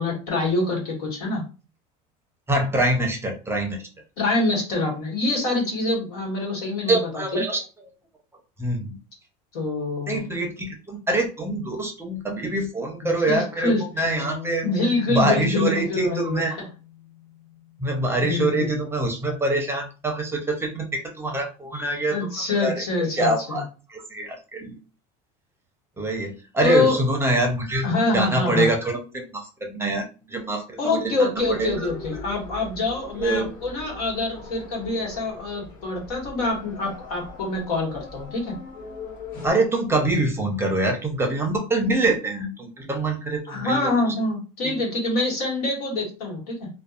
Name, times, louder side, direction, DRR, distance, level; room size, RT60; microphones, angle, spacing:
voice 1, 0.0-1.4 4.2-7.4 9.5-10.2 13.3-13.8 14.6-16.5 18.2-18.8 22.1-23.6 26.6-27.0 27.8-28.7 30.8-38.5 43.5-46.7, left 2 dB, 90° left, -1 dB, 1.3 m, -25 dB
voice 2, 2.5-3.9 6.9-7.6 8.6-9.0 10.1-14.6 15.1-16.6 17.8-22.3 22.6-22.8 23.2-23.6 23.9-24.8 26.0-27.9 28.1-31.9 33.2-33.5 39.4-43.9 44.6-44.7, right 2 dB, 15° right, 3 dB, 0.6 m, -25 dB
sound 1, 14.0-19.1, left 8 dB, 30° left, 0.8 m, -42 dB
sound 2, 31.3-39.5, left 3 dB, 45° left, 1.2 m, -41 dB
2.5 x 2.1 x 2.4 m, 0.33 s
supercardioid pair, 120°, 19 cm